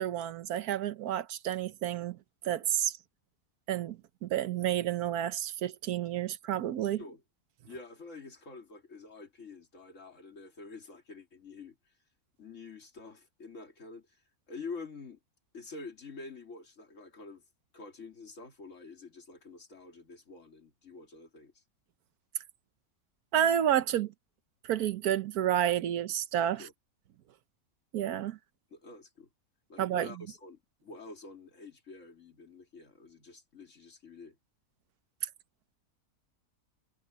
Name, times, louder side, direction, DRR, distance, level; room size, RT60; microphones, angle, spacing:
voice 1, 0.0-2.2 2.4-3.0 3.7-7.0 23.3-24.1 24.6-26.7 27.9-28.4 29.8-30.1, right 10 dB, 85° right, 1.3 m, -30 dB
voice 2, 6.8-7.2 7.6-11.8 12.4-14.2 14.5-15.2 15.5-17.4 17.7-21.6 26.6-26.7 28.7-29.3 29.7-34.4, left 3 dB, 55° left, 2.7 m, -47 dB
omnidirectional pair, 1.6 m